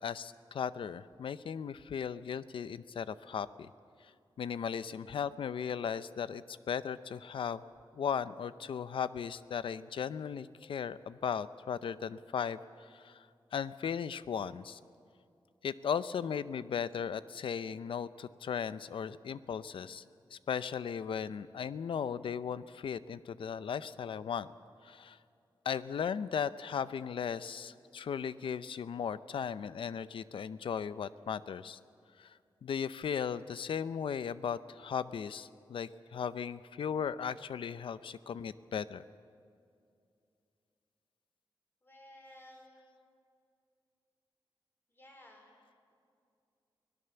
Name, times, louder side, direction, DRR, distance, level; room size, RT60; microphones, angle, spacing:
voice 1, 0.0-3.7 4.4-7.6 7.9-13.3 13.5-14.8 15.6-20.0 20.3-24.5 24.8-25.2 25.6-31.8 32.2-39.0, left 7 dB, 80° left, 15 dB, 0.6 m, -37 dB
voice 2, 41.8-42.8 44.9-45.6, left 1 dB, 25° left, 1 dB, 4.0 m, -55 dB
24.5 x 18.0 x 7.0 m, 2.4 s
wide cardioid pair, 175°, 9 cm